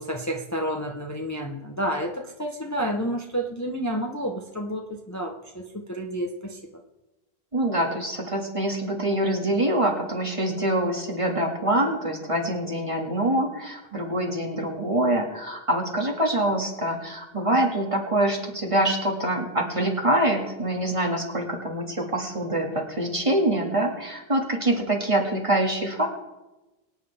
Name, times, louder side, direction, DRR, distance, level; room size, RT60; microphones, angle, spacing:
voice 1, 0.0-6.6, equal, 15° left, 1 dB, 0.9 m, -30 dB
voice 2, 7.5-26.1, right 1 dB, 30° right, 0 dB, 2.1 m, -25 dB
23.5 x 9.3 x 3.5 m, 1.0 s
omnidirectional pair, 1.0 m